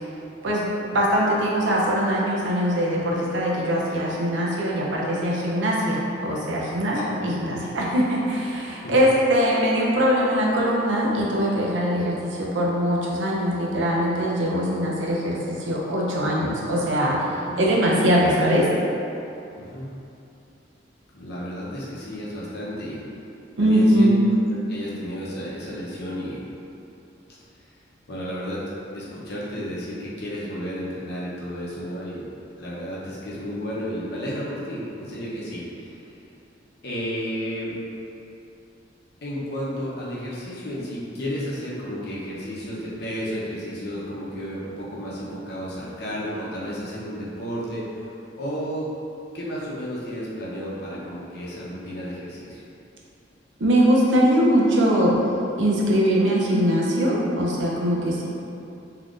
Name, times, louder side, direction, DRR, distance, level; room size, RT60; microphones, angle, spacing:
voice 1, 0.4-18.7 23.6-24.2 53.6-55.2 55.6-58.3, equal, 90° right, -4 dB, 0.6 m, -22 dB
voice 2, 19.6-19.9 21.1-23.0 23.6-24.1 24.7-26.4 27.3-27.4 28.1-32.3 32.6-36.0 36.8-37.8 39.2-47.9 48.4-48.9 49.3-52.6, equal, 60° left, -7 dB, 0.7 m, -32 dB
3.5 x 2.8 x 2.4 m, 2.7 s
head